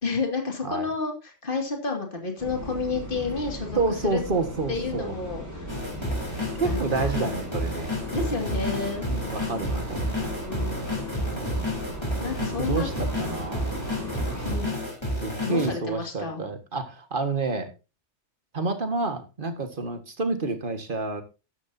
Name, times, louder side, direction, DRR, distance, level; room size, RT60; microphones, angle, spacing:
voice 1, 0.0-4.2 4.7-5.7 6.6-7.1 8.1-9.1 10.4-11.1 12.2-12.9 14.4-14.8 15.4-16.5, left 4 dB, 45° left, 3 dB, 2.6 m, -30 dB
sound 1, 2.4-14.6, right 1 dB, 15° right, 5.8 m, -37 dB
voice 2, 3.8-5.1 6.6-7.9 9.1-10.2 11.2-11.7 12.4-13.8 15.2-17.7 18.5-21.2, right 3 dB, 45° right, 7 dB, 1.9 m, -29 dB
sound 2, 5.7-15.7, left 1 dB, 20° left, 4.2 m, -30 dB
13.0 x 11.0 x 2.8 m, 0.29 s
omnidirectional pair, 1.2 m